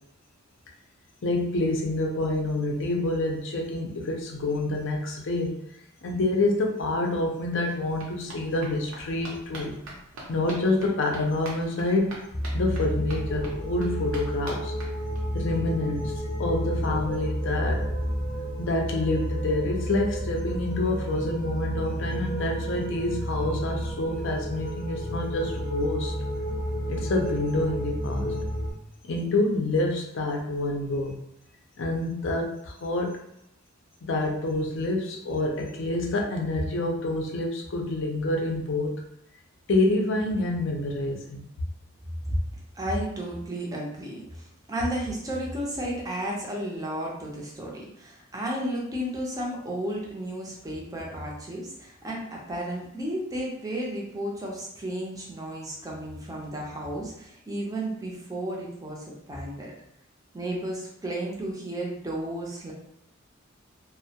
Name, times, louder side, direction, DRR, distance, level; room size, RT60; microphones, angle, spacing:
voice 1, 1.2-5.5 6.0-9.8 10.3-12.2 12.5-14.7 15.3-16.1 16.4-17.9 18.6-26.1 26.9-28.4 29.1-31.2 31.8-33.2 34.0-39.0 39.7-41.4, left 2 dB, 60° left, 1 dB, 0.5 m, -27 dB
sound 1, 6.7-6.8 7.1-15.5 15.8-15.9 16.2-16.3 16.5-16.6, right 1 dB, 70° right, 0.7 m, -45 dB
sound 2, 12.3-28.7, equal, 25° left, 0.7 m, -31 dB
voice 2, 42.8-59.7 60.3-62.7, right 1 dB, 15° right, -3 dB, 0.5 m, -33 dB
2.2 x 2.1 x 2.7 m, 0.75 s
head